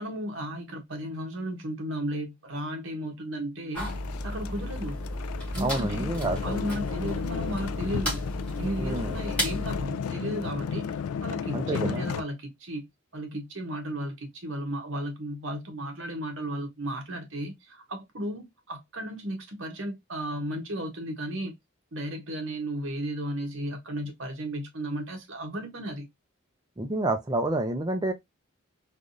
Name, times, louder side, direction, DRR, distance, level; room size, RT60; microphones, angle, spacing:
voice 1, 0.0-3.9 4.2-5.0 5.5-6.1 6.4-8.2 8.6-10.9 11.2-12.9 13.1-21.5 21.9-26.1, right 1 dB, 60° right, 1.0 m, -34 dB
sound 1, 3.7-9.9, equal, 5° left, 1.3 m, -33 dB
sound 2, 3.8-12.2, left 7 dB, 90° left, 0.3 m, -34 dB
voice 2, 5.6-6.6 8.8-9.2 11.5-12.0 26.8-28.1, right 2 dB, 20° right, 0.4 m, -28 dB
3.4 x 2.4 x 2.5 m
head